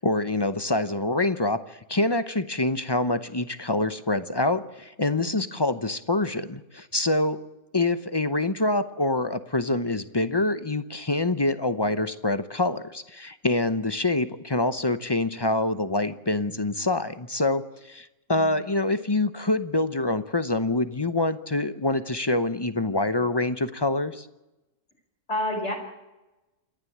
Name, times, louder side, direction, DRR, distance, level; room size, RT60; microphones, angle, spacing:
voice 1, 0.0-7.4 7.7-24.3, left 2 dB, 25° left, 12 dB, 0.6 m, -26 dB
voice 2, 5.2-5.5 18.3-18.6 25.3-25.7, left 1 dB, 45° left, 1 dB, 4.9 m, -30 dB
28.0 x 11.5 x 8.6 m, 1.0 s
omnidirectional pair, 1.6 m